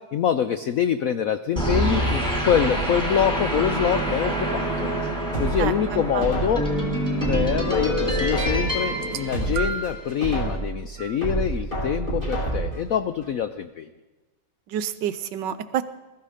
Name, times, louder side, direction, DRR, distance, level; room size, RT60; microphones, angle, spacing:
voice 1, 0.0-4.9 5.4-6.6 7.3-13.9, left 9 dB, 80° left, 10 dB, 0.7 m, -25 dB
sound 1, 1.6-10.1, equal, ahead, 3.7 m, -26 dB
sound 2, 5.3-6.7 7.2-8.8 9.2-10.7 11.2-12.8 13.2-13.3, right 2 dB, 25° left, 4.3 m, -28 dB
voice 2, 5.6-6.6 14.7-15.8, right 9 dB, 70° right, 13 dB, 1.3 m, -29 dB
sound 3, 8.9-10.1 11.0-11.2 12.2-12.3, right 5 dB, 85° right, 1.6 m, -33 dB
21.0 x 13.5 x 5.0 m, 1.2 s
omnidirectional pair, 2.2 m